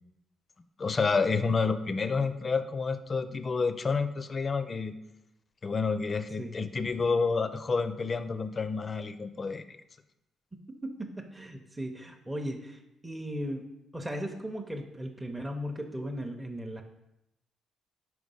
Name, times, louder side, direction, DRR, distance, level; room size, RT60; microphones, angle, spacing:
voice 1, 0.8-4.9 5.6-9.8, left 4 dB, 35° left, 12 dB, 0.5 m, -29 dB
voice 2, 10.5-13.7 13.9-16.8, equal, 10° right, 2 dB, 0.7 m, -37 dB
5.0 x 4.7 x 5.5 m, 0.87 s
cardioid pair, 90°, 0 cm